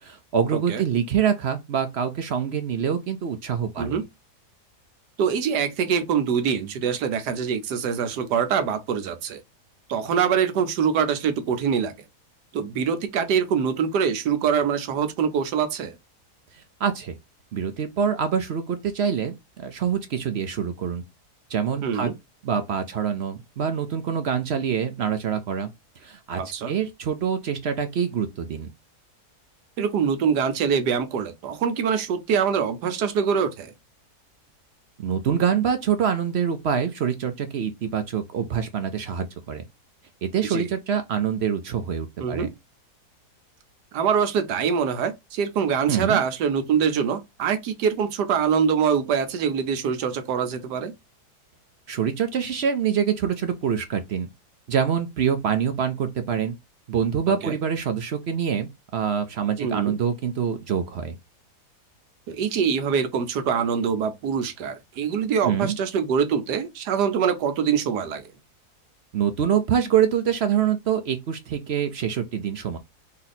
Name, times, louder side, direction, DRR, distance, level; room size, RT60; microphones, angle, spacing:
voice 1, 0.0-4.0 16.5-17.2 17.5-21.0 21.5-22.1 22.4-25.7 26.0-26.4 26.7-28.7 35.0-39.6 40.2-42.5 45.9-46.2 51.9-54.3 54.7-56.5 56.9-61.2 65.4-65.7 69.1-72.8, right 8 dB, 60° right, 0.7 m, -25 dB
voice 2, 0.5-0.8 3.8-4.0 5.2-9.4 9.9-11.9 12.5-15.9 21.8-22.1 26.4-26.7 29.8-33.7 40.5-40.7 42.2-42.5 43.9-50.9 57.3-57.6 59.6-60.0 62.3-68.2, right 7 dB, 85° right, 1.4 m, -24 dB
4.2 x 2.8 x 4.1 m
omnidirectional pair, 1.7 m